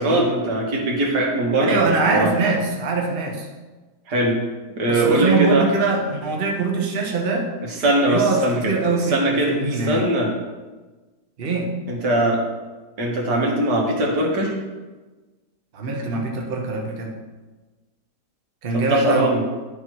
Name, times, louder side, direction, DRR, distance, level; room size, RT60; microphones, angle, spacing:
voice 1, 0.0-2.3 4.1-4.4 4.8-5.7 7.7-8.7 9.1-10.3 11.9-12.4 13.0-14.5 18.7-19.4, right 1 dB, 75° right, -1 dB, 2.0 m, -21 dB
voice 2, 1.6-3.5 4.9-7.5 8.1-10.0 11.4-11.7 15.7-17.1 18.6-19.3, right 3 dB, 40° right, 0 dB, 1.1 m, -23 dB
10.5 x 4.5 x 4.6 m, 1.2 s
omnidirectional pair, 1.8 m